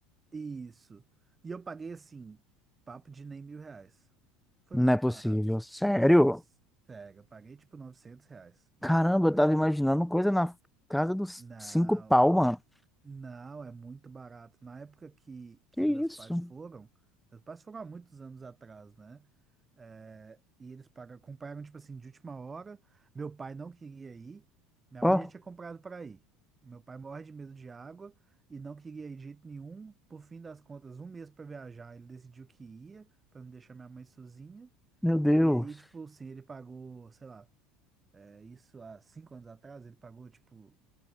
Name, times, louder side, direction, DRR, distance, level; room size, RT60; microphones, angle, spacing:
voice 1, 0.3-1.0 1.4-2.4 2.9-4.1 4.7-5.4 6.9-9.8 11.4-12.1 13.0-16.9 17.3-19.3 19.8-24.4 24.9-26.2 26.6-28.1 28.5-34.7 35.4-37.5 38.1-40.7, right 4 dB, 25° right, 4.6 m, -46 dB
voice 2, 4.7-6.4 8.8-10.5 10.9-12.6 15.8-16.5 25.0-25.3 35.0-35.6, equal, ahead, 0.5 m, -25 dB
hypercardioid pair, 75°, 0 cm